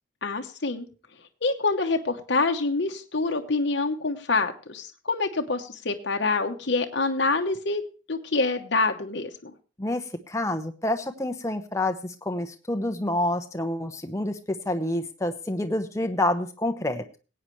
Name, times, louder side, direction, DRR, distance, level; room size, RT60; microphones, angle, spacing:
voice 1, 0.2-0.9 1.4-7.8 8.1-9.5, left 3 dB, 55° left, 4 dB, 1.0 m, -26 dB
voice 2, 9.8-17.2, left 1 dB, 15° left, 6 dB, 0.9 m, -28 dB
18.5 x 8.8 x 3.2 m, 0.34 s
head